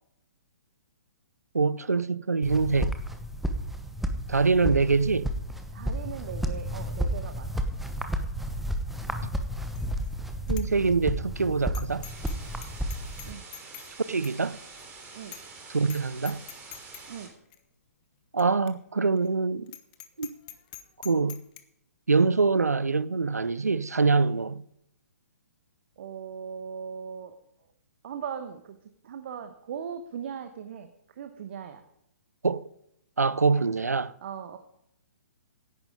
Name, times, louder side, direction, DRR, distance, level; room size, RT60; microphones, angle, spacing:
voice 1, 1.5-3.0 4.3-5.3 10.5-12.1 14.1-14.6 15.7-16.5 18.3-19.7 20.2-20.3 21.0-21.4 22.1-24.6 32.4-32.7 33.2-34.1, right 4 dB, 75° right, 0.6 m, -24 dB
sound 1, 2.4-13.3, equal, ahead, 1.0 m, -32 dB
voice 2, 5.7-7.6 13.2-13.5 15.1-15.4 17.1-17.3 26.0-27.3 28.0-28.8 29.0-31.8 34.2-34.6, right 7 dB, 45° right, 1.1 m, -39 dB
Bicycle bell, 9.8-10.1 10.5-10.7 11.0-11.1 11.7-12.4 12.6-13.9 14.2-14.4 14.8-14.9 15.3-15.6 15.8-16.0 16.3-17.0 17.5-17.6 18.4-18.5 18.7-18.8 19.2-19.3 19.7-21.6, left 14 dB, 30° left, 1.2 m, -44 dB
sound 2, 12.0-17.3, right 4 dB, 20° right, 3.5 m, -46 dB
17.0 x 11.0 x 3.7 m
figure-of-eight pair, 125°, 9 cm